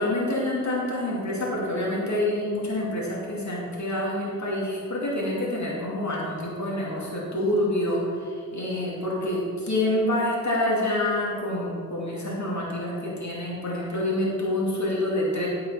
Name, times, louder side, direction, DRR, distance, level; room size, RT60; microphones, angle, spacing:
voice 1, 0.0-15.5, left 1 dB, 50° left, -5 dB, 2.3 m, -27 dB
11.5 x 5.5 x 5.8 m, 2.2 s
wide cardioid pair, 95°, 36 cm